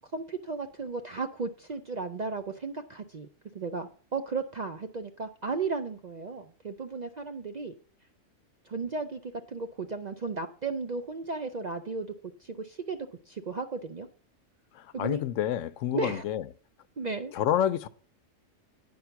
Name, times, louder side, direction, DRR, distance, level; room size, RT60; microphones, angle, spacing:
voice 1, 0.1-3.3 3.5-7.7 8.7-12.1 12.4-13.0 13.3-14.1 14.9-15.2 15.9-16.2 17.0-17.3, right 4 dB, 55° right, 0.5 m, -34 dB
voice 2, 14.7-16.4 17.3-17.9, left 11 dB, 75° left, 0.9 m, -28 dB
9.5 x 5.5 x 5.7 m
omnidirectional pair, 1.3 m